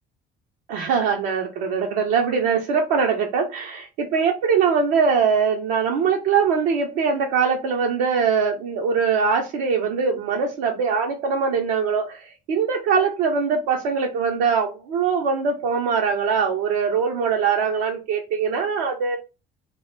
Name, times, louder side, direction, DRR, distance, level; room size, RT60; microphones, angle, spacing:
voice 1, 0.7-19.2, right 6 dB, 55° right, 0.5 m, -22 dB
2.1 x 2.0 x 3.3 m
figure-of-eight pair, 55°, 30 cm